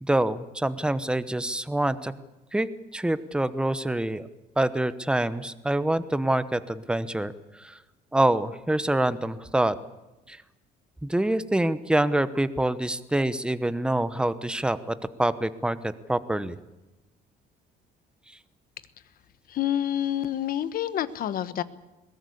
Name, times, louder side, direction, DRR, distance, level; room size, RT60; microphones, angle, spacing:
voice 1, 0.0-2.1 2.5-2.7 2.9-4.3 4.6-7.8 8.1-9.7 10.3-10.4 11.0-16.6, right 1 dB, 5° right, 13 dB, 1.0 m, -26 dB
voice 2, 19.5-21.6, left 11 dB, 60° left, 14 dB, 1.1 m, -28 dB
21.0 x 17.0 x 8.5 m, 1.0 s
cardioid pair, 110°, 17 cm